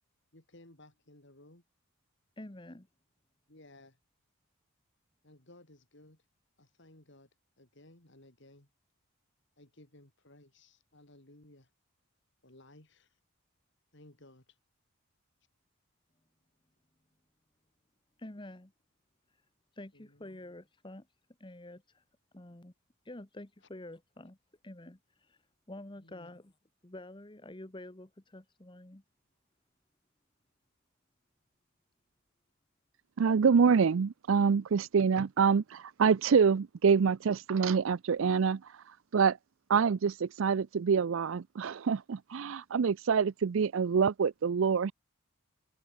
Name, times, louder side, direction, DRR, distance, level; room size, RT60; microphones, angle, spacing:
voice 1, 0.3-1.6 3.5-4.0 5.2-6.2 6.6-7.3 7.6-8.7 9.6-11.7 12.4-13.1 13.9-14.6 19.9-20.4 26.0-26.3, left 1 dB, 55° left, 3.3 m, -58 dB
voice 2, 2.4-2.9 18.2-18.7 19.8-21.1 21.4-22.0 22.3-22.7 23.0-24.4 24.6-25.4 25.7-26.5 26.8-29.0, left 1 dB, 20° left, 1.1 m, -48 dB
voice 3, 33.2-38.6 39.1-39.4 39.7-44.9, right 6 dB, 65° right, 0.4 m, -26 dB
head